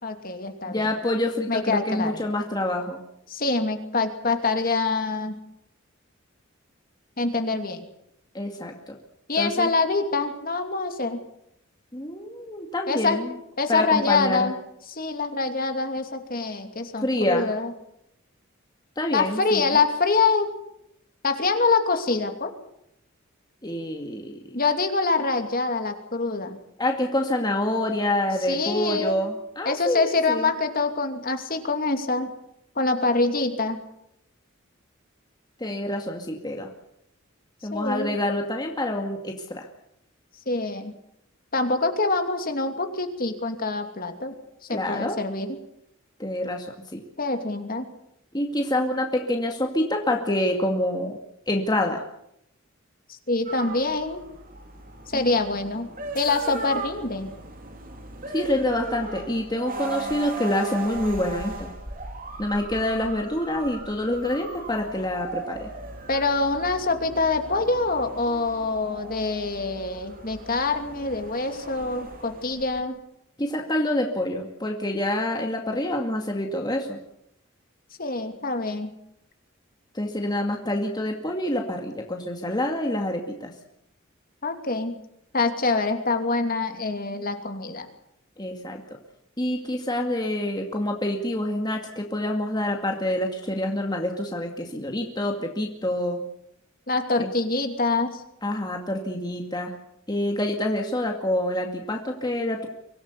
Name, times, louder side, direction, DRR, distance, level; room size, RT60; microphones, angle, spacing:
voice 1, 0.0-0.9 1.5-2.1 3.3-5.3 7.2-7.8 9.3-11.2 12.9-13.2 13.6-14.6 14.9-17.7 19.1-20.5 21.2-22.5 24.5-26.6 28.5-29.2 29.6-32.3 32.8-33.8 37.7-38.2 40.5-40.9 41.5-44.3 44.7-45.6 47.2-47.9 53.3-54.2 55.1-55.9 56.1-57.3 66.1-73.0 78.0-78.9 84.4-85.0 85.3-87.9 96.9-98.2, left 3 dB, 45° left, 6 dB, 2.8 m, -25 dB
voice 2, 0.7-3.0 8.3-9.0 9.4-9.7 11.9-13.3 13.7-14.5 17.0-17.5 19.0-19.6 23.6-24.4 26.8-30.5 35.6-36.7 37.6-39.7 44.7-45.2 46.2-46.7 46.9-47.0 48.3-51.2 51.5-52.0 55.1-55.3 58.3-61.7 62.4-65.7 73.4-77.0 79.9-83.5 88.4-88.8 89.4-96.2 97.2-97.3 98.4-99.7 100.1-102.7, left 1 dB, 20° left, 2 dB, 2.2 m, -27 dB
sound 1, 53.5-72.8, right 3 dB, 45° right, 3.3 m, -38 dB
24.5 x 17.0 x 8.4 m, 0.78 s
head